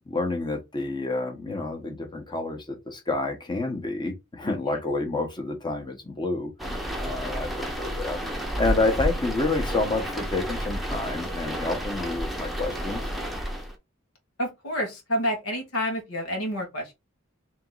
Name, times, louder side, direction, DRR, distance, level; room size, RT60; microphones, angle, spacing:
voice 1, 0.1-6.5 7.0-13.0, left 2 dB, 20° left, 1.1 m, -29 dB
sound 1, 6.6-13.7, equal, ahead, 0.8 m, -31 dB
voice 2, 14.4-16.9, equal, 80° left, 1.5 m, -29 dB
3.6 x 3.0 x 3.9 m
head